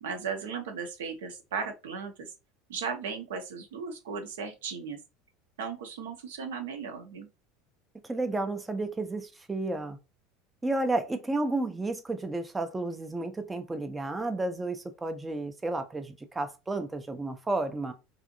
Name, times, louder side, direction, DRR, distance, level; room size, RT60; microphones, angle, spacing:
voice 1, 0.0-2.3 2.7-5.0 5.6-7.3, right 5 dB, 70° right, 0.5 m, -36 dB
voice 2, 8.0-10.0 10.6-17.9, right 2 dB, 15° right, 0.4 m, -32 dB
2.6 x 2.5 x 2.6 m
figure-of-eight pair, 75°, 0 cm